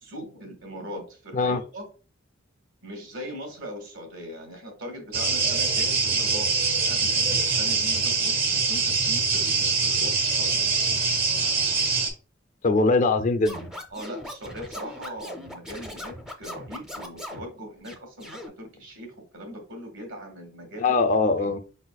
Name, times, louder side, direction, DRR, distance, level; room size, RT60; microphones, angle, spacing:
voice 1, 0.0-1.9 2.8-6.6 6.9-10.6 13.9-21.1 21.4-21.6, equal, 65° right, 1.7 m, -40 dB
sound 1, 5.1-12.1, right 4 dB, 50° right, 1.1 m, -24 dB
voice 2, 12.6-13.7 20.8-21.6, left 3 dB, 40° left, 0.4 m, -22 dB
Scratching (performance technique), 13.4-17.4 17.8-18.5, left 1 dB, 5° right, 0.6 m, -39 dB
4.8 x 4.1 x 2.2 m
head